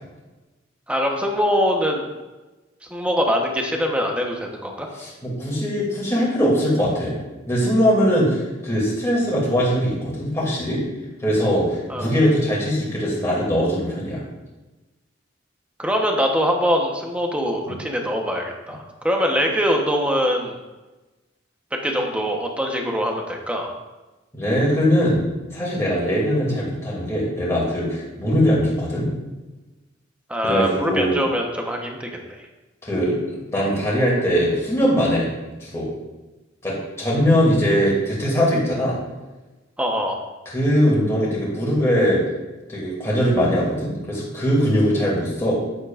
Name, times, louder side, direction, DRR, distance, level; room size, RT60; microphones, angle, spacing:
voice 1, 0.9-2.1 2.9-4.9 11.9-12.1 15.8-20.6 21.8-23.7 30.3-32.2 39.8-40.2, equal, 5° right, 1 dB, 1.0 m, -23 dB
voice 2, 5.0-7.2 7.5-10.8 11.2-14.2 17.6-17.8 24.3-25.2 25.5-29.1 30.4-31.2 32.8-35.3 35.6-35.9 36.6-39.0 40.5-42.2 42.7-45.6, equal, 15° left, -6 dB, 2.5 m, -21 dB
9.5 x 8.3 x 2.5 m, 1.1 s
head